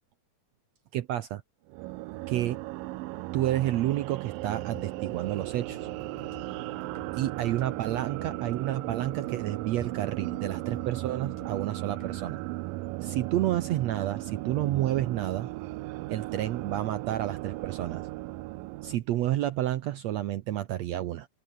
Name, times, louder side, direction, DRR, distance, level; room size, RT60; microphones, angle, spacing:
voice 1, 0.9-1.4 2.3-2.6 3.3-5.9 7.1-12.4 13.0-15.5 16.1-18.1 18.8-21.3, right 13 dB, 70° right, 1.7 m, -30 dB
sound 1, 1.7-19.0, right 19 dB, 90° right, 2.4 m, -36 dB
sound 2, 4.4-12.5, left 6 dB, 60° left, 4.7 m, -51 dB
omnidirectional pair, 3.9 m